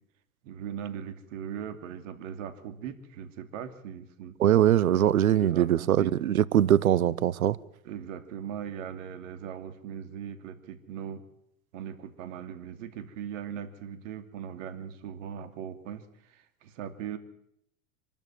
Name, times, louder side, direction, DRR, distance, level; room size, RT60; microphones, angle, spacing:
voice 1, 0.4-4.4 5.4-6.2 6.9-7.0 7.8-11.2 11.7-17.2, right 8 dB, 65° right, 2.8 m, -39 dB
voice 2, 4.4-7.6, right 11 dB, 85° right, 0.9 m, -22 dB
26.0 x 12.5 x 9.1 m
hypercardioid pair, 95°, 41 cm